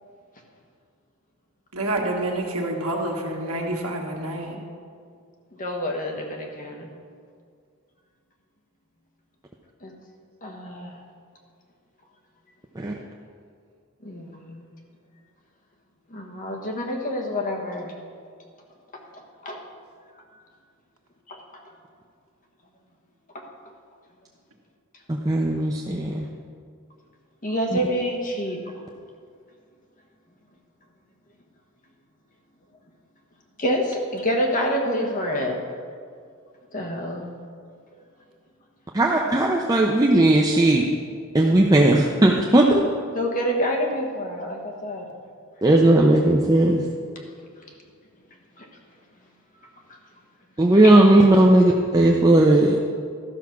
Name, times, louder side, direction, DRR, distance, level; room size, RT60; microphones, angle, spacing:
voice 1, 1.7-4.6, right 1 dB, 75° right, 0 dB, 1.6 m, -28 dB
voice 2, 5.6-6.9 9.8-9.9 10.4-11.0 14.0-14.7 16.1-18.0 19.1-19.6 21.3-21.4 23.3-23.5 27.4-28.6 33.6-35.6 36.7-37.3 37.9-38.0 43.1-45.1 48.6-48.7 50.8-50.9, equal, 35° left, 1 dB, 1.3 m, -27 dB
voice 3, 25.1-26.3 38.9-40.9 41.3-42.8 45.6-46.8 50.6-53.0, right 1 dB, 15° right, -1 dB, 0.5 m, -17 dB
12.5 x 6.1 x 5.8 m, 2.2 s
head